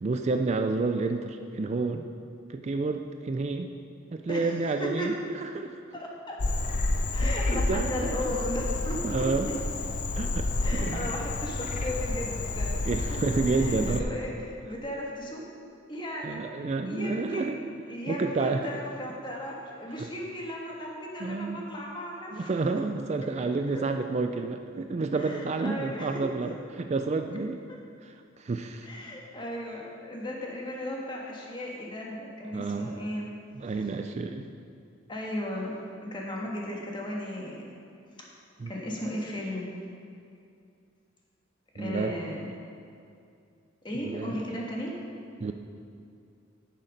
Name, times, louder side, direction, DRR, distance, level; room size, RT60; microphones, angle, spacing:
voice 1, 0.0-2.1 2.5-3.7 4.1-5.8 7.2-8.3 9.0-9.5 10.2-11.1 12.8-14.1 16.2-17.6 18.1-18.7 21.2-21.7 22.3-27.6 28.0-28.9 32.5-33.0 33.5-34.5 38.6-38.7 41.8-42.1 44.0-44.7 45.4-45.5, right 3 dB, 35° right, 6 dB, 0.4 m, -30 dB
voice 2, 4.8-5.1 5.9-6.4 7.1-9.2 10.6-13.0 13.5-15.5 15.9-16.5 16.8-17.6 17.9-22.5 23.3-23.4 25.1-26.2 27.7-27.8 28.8-33.3 35.1-35.7 36.0-37.7 38.2-38.3 38.7-39.7 41.7-42.5 43.8-44.9, left 1 dB, 25° left, -2 dB, 1.5 m, -36 dB
Frog, 6.4-14.0, left 2 dB, 40° left, 0.5 m, -30 dB
10.0 x 6.6 x 5.2 m, 2.4 s
head